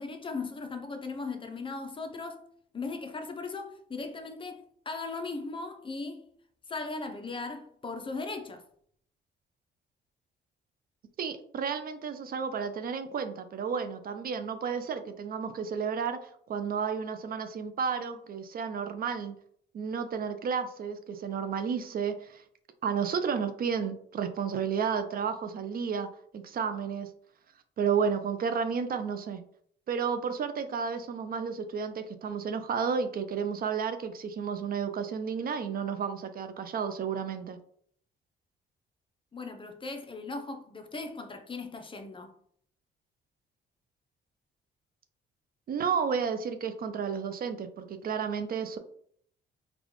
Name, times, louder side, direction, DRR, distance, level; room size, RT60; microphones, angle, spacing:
voice 1, 0.0-2.4 2.7-6.3 6.7-8.6 39.3-42.3, left 3 dB, 25° left, 0.6 m, -38 dB
voice 2, 11.2-16.2 16.5-19.3 19.7-22.4 22.8-26.1 26.3-27.1 27.8-29.4 29.9-37.6 45.7-48.8, right 6 dB, 50° right, 0.4 m, -32 dB
3.9 x 2.3 x 3.0 m
cardioid pair, 90°, 20 cm